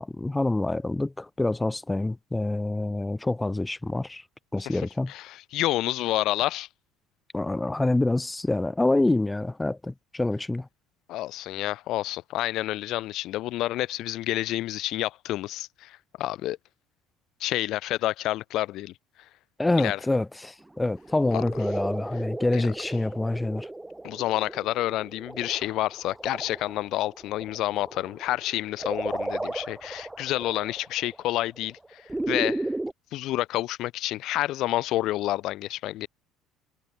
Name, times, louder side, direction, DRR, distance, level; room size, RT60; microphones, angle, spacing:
voice 1, 0.0-4.2 4.5-5.1 7.3-10.7 19.6-23.7, left 2 dB, 10° left, 3.8 m, -26 dB
voice 2, 5.1-6.7 11.1-16.6 17.4-18.9 19.8-20.0 21.3-21.4 22.5-22.6 24.0-32.7 33.1-36.1, left 15 dB, 55° left, 2.0 m, -29 dB
sound 1, 20.9-32.9, right 2 dB, 10° right, 2.8 m, -35 dB
figure-of-eight pair, 60°, 0 cm